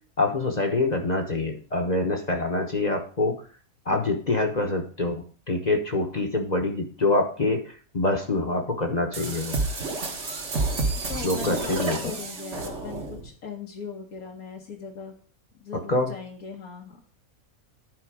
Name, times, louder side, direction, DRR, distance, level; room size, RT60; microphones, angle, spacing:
voice 1, 0.2-3.4 3.9-7.6 7.9-9.6 11.2-12.0 15.9-16.1, left 2 dB, 30° left, 2 dB, 1.0 m, -25 dB
voice 2, 3.9-4.2 10.9-15.1 15.6-17.0, left 5 dB, 80° left, -1 dB, 1.7 m, -39 dB
sound 1, 9.1-13.3, right 3 dB, 55° right, 1.7 m, -30 dB
11.0 x 4.7 x 4.7 m, 0.42 s
omnidirectional pair, 1.5 m